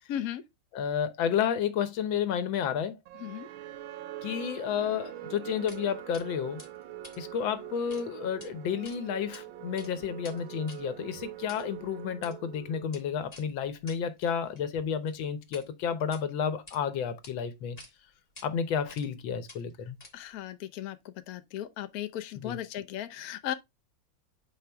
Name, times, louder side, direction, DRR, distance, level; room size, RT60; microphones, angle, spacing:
voice 1, 0.1-0.4 3.2-3.5 20.1-23.5, left 11 dB, 60° left, 1.1 m, -36 dB
voice 2, 0.7-3.0 4.2-6.6 7.2-17.8 18.4-20.0 22.4-22.6, left 8 dB, 85° left, 1.7 m, -31 dB
sound 1, 3.1-13.3, right 13 dB, 90° right, 1.4 m, -44 dB
sound 2, 5.7-5.8 6.1-6.3 6.6-8.0 8.3-8.5 8.8-9.4 9.7-15.7 16.0-16.8 17.2-17.3 17.8-17.9 18.4-18.5 18.9-19.2 19.5-20.4, left 2 dB, 20° left, 1.7 m, -51 dB
7.2 x 4.8 x 3.4 m
omnidirectional pair, 2.1 m